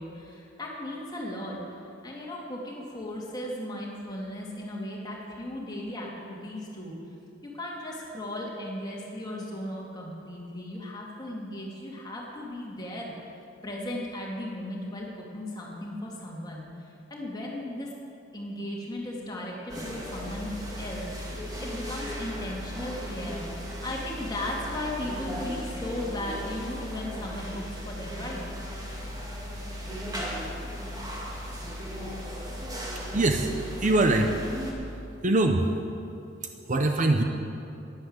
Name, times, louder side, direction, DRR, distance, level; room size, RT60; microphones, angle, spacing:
voice 1, 0.0-1.6 2.0-6.9 7.4-13.1 13.6-16.7 17.1-17.9 18.3-21.1 21.6-28.4, left 1 dB, 20° left, -3 dB, 2.5 m, -36 dB
sound 1, 19.7-34.7, equal, 20° right, 1.9 m, -36 dB
voice 2, 33.1-33.5 33.8-34.3 34.6-34.7 35.2-35.6 36.7-37.2, right 2 dB, 40° right, 5 dB, 0.7 m, -22 dB
12.0 x 10.5 x 8.1 m, 2.6 s
head